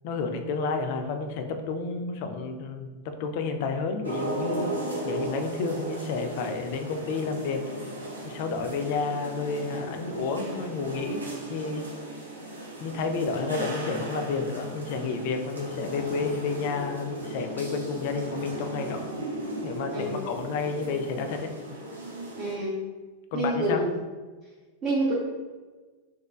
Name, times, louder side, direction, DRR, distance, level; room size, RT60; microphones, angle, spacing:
voice 1, 0.0-4.7 5.0-7.6 8.2-11.2 11.5-11.8 12.8-19.1 19.6-21.5 23.3-23.8, left 4 dB, 50° left, 6 dB, 0.3 m, -30 dB
sound 1, 4.0-22.5, right 1 dB, 75° right, 0.5 m, -36 dB
voice 2, 19.9-20.3 22.4-22.8 23.3-23.9 24.8-25.1, right 1 dB, 30° right, -7 dB, 0.6 m, -27 dB
3.0 x 2.2 x 2.2 m, 1.3 s
figure-of-eight pair, 90°, 0 cm